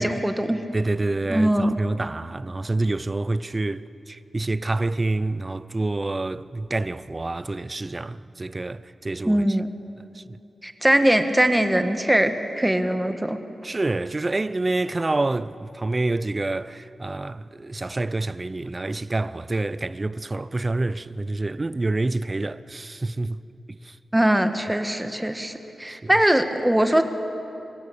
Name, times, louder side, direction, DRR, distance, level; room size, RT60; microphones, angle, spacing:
voice 1, 0.0-0.6 1.3-1.8 9.3-9.7 10.6-13.4 24.1-27.0, right 1 dB, 10° right, 1.5 m, -21 dB
voice 2, 0.7-9.6 10.1-10.2 13.6-23.4 23.7-24.0 25.9-26.1, right 2 dB, 25° right, 0.6 m, -27 dB
26.0 x 21.5 x 8.5 m
wide cardioid pair, 120°, 0 cm